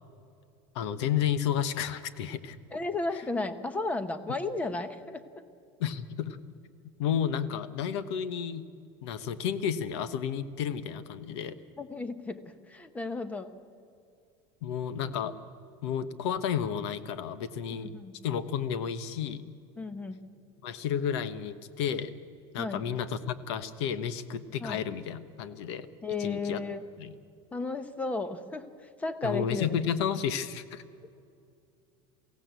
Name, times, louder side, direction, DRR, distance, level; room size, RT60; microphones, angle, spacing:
voice 1, 0.7-2.6 5.8-6.4 7.0-8.7 9.0-11.6 14.6-15.3 15.8-17.9 18.2-19.5 20.6-22.1 22.5-25.9 26.2-26.6 27.0-27.1 29.2-30.8, left 8 dB, 85° left, 13 dB, 1.2 m, -31 dB
voice 2, 2.7-5.2 11.8-13.5 17.7-18.1 19.8-20.2 22.6-22.9 24.6-24.8 26.0-26.9 27.5-29.8, left 3 dB, 10° left, 11 dB, 0.9 m, -34 dB
23.0 x 16.0 x 8.2 m, 2.5 s
cardioid pair, 170°, 14 cm